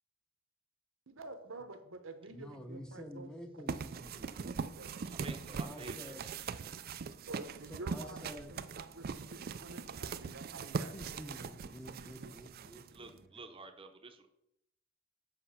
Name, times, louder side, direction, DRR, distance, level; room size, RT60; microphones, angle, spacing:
voice 1, 1.1-3.3 4.0-4.1 4.6-5.1 7.3-11.2 12.2-12.3, right 2 dB, 70° right, 8 dB, 1.0 m, -49 dB
voice 2, 2.3-4.4 4.7-4.9 5.2-6.2 7.7-8.5 10.9-13.4, equal, 5° left, 4 dB, 0.8 m, -50 dB
sound 1, 3.7-13.2, right 5 dB, 45° right, 0.4 m, -41 dB
voice 3, 5.1-6.4 12.9-14.3, right 3 dB, 25° right, 5 dB, 0.8 m, -50 dB
7.7 x 5.8 x 5.7 m, 0.81 s
head